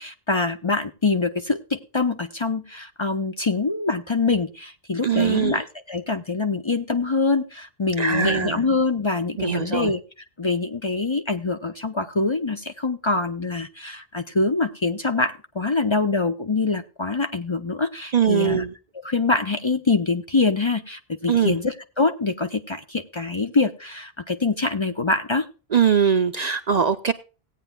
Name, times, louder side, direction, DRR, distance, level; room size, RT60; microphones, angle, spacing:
voice 1, 0.0-10.0 10.4-18.6 19.0-25.5, left 3 dB, 30° left, 0.6 m, -24 dB
voice 2, 5.0-5.6 8.0-8.6 9.4-9.9 18.1-18.7 21.3-21.6 25.7-27.1, right 7 dB, 50° right, 0.6 m, -21 dB
17.5 x 9.0 x 2.2 m
omnidirectional pair, 1.1 m